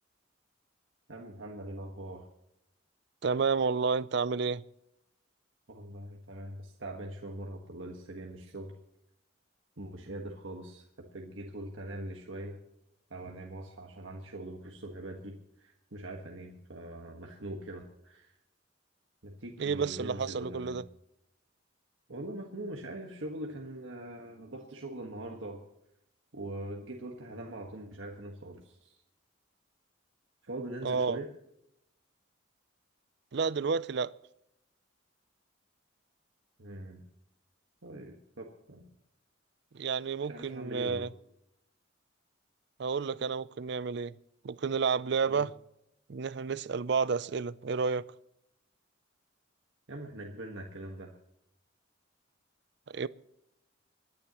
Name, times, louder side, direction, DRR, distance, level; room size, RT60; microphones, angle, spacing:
voice 1, 1.1-2.3 5.7-8.7 9.8-10.8 11.1-12.6 13.1-18.3 19.2-20.8 22.1-25.6 26.3-29.0 30.4-31.3 36.6-37.0 37.8-38.9 40.2-41.1 45.3-45.5 49.9-51.1, right 1 dB, 75° right, 1.5 m, -42 dB
voice 2, 3.2-4.6 19.6-20.8 30.8-31.2 33.3-34.1 39.7-41.1 42.8-44.1 44.4-45.5 46.1-48.0 52.9-53.1, right 5 dB, 55° right, 0.4 m, -30 dB
28.0 x 10.5 x 3.0 m
head